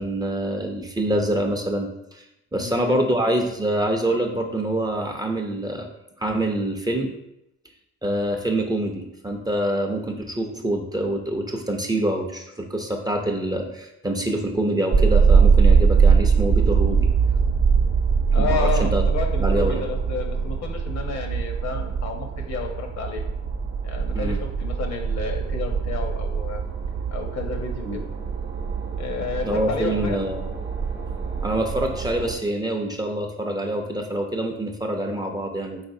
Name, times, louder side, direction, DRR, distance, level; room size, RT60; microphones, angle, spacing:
voice 1, 0.0-2.2 2.5-5.9 6.2-7.1 8.0-17.1 18.3-19.0 19.4-19.8 24.1-24.4 27.8-28.0 29.4-30.4 31.4-35.8, right 1 dB, 15° right, 2 dB, 0.6 m, -25 dB
voice 2, 2.5-3.1 18.3-23.2 23.8-26.6 27.1-28.0 29.0-30.2, left 5 dB, 60° left, 3 dB, 0.9 m, -31 dB
sound 1, 14.9-32.3, right 5 dB, 50° right, 0.8 m, -22 dB
4.8 x 3.7 x 2.7 m, 0.84 s
cardioid pair, 90°, 30 cm